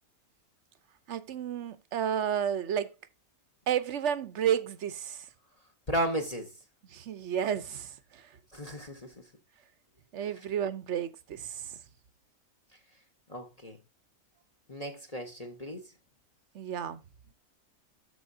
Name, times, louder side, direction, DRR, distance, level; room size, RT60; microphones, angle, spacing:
voice 1, 1.1-2.9 3.7-5.3 6.9-8.3 10.1-11.7 16.5-17.0, right 9 dB, 60° right, 0.9 m, -32 dB
voice 2, 5.9-6.5 8.5-9.1 13.3-13.8 14.7-15.8, equal, 30° left, 1.0 m, -34 dB
13.5 x 4.7 x 2.7 m
omnidirectional pair, 1.6 m